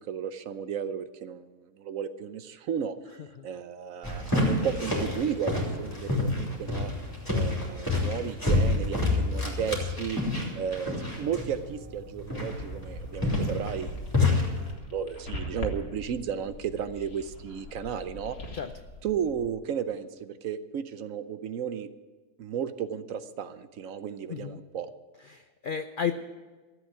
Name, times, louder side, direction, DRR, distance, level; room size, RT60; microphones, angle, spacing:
voice 1, 0.1-2.9 3.4-5.5 5.8-6.9 7.3-10.2 10.5-14.0 14.3-14.4 14.9-18.4 19.0-21.9 22.4-24.9, right 8 dB, 65° right, 12 dB, 1.0 m, -33 dB
sound 1, 4.0-14.7, left 2 dB, 15° left, 3.1 m, -29 dB
voice 2, 10.2-10.5 18.5-18.7 24.3-24.6 25.3-26.1, left 7 dB, 85° left, 9 dB, 0.4 m, -33 dB
sound 2, 12.5-19.5, left 1 dB, 65° left, 2.3 m, -41 dB
14.0 x 8.2 x 9.1 m, 1.3 s
omnidirectional pair, 1.7 m